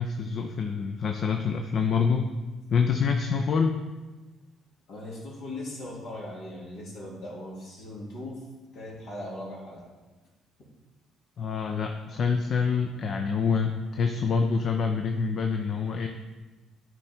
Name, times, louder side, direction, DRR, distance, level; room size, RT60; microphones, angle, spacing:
voice 1, 0.0-2.3 2.7-3.8 11.4-16.1, left 5 dB, 55° left, 4 dB, 0.6 m, -26 dB
voice 2, 4.9-8.4 8.7-9.8, left 1 dB, 75° left, -5 dB, 2.7 m, -39 dB
9.8 x 4.6 x 4.4 m, 1.2 s
supercardioid pair, 65°, 0 cm